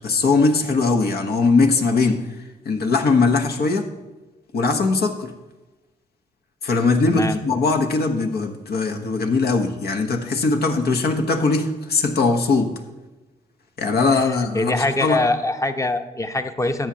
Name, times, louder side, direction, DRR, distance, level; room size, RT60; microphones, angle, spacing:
voice 1, 0.0-2.2 2.6-3.9 4.5-5.3 6.6-12.7 13.8-15.2, left 3 dB, 65° left, 4 dB, 1.2 m, -20 dB
voice 2, 7.1-7.4 14.1-16.9, left 2 dB, 20° left, 8 dB, 0.9 m, -23 dB
13.5 x 8.7 x 2.9 m, 1.1 s
supercardioid pair, 55°, 17 cm